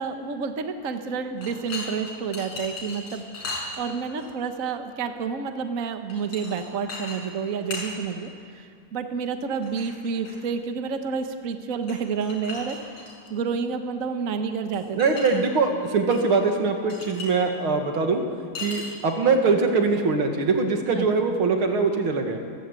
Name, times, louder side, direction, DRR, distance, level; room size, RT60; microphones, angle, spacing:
voice 1, 0.0-15.4 20.9-21.1, right 5 dB, 45° right, 7 dB, 1.4 m, -30 dB
sound 1, 1.4-4.3 6.1-6.6 6.9-7.2 7.4-7.9 9.6-10.4 11.8-13.3 14.7-15.3 15.6-16.2 16.5-16.6 16.9-17.3 18.5-19.1, left 3 dB, 85° left, 6.4 m, -36 dB
voice 2, 14.9-18.2 18.6-22.4, right 4 dB, 75° right, 4 dB, 2.7 m, -22 dB
28.5 x 14.5 x 8.3 m, 2.4 s
omnidirectional pair, 2.3 m